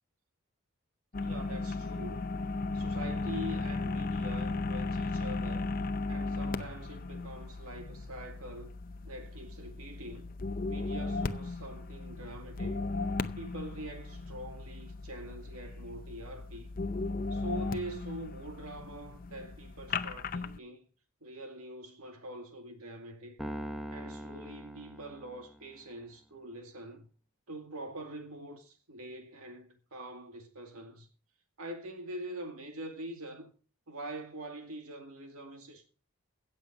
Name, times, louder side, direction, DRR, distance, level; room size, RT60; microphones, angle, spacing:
sound 1, 1.1-20.6, left 3 dB, 40° left, 0.6 m, -36 dB
voice 1, 1.2-2.2 2.7-5.7 6.1-8.7 9.0-10.3 10.7-12.8 13.4-16.7 17.3-20.9 21.2-23.4 23.9-27.1 27.5-31.1 31.6-33.5 33.9-35.9, right 1 dB, 85° right, 2.4 m, -44 dB
Piano, 23.4-25.8, equal, ahead, 0.9 m, -42 dB
16.5 x 7.4 x 5.3 m
head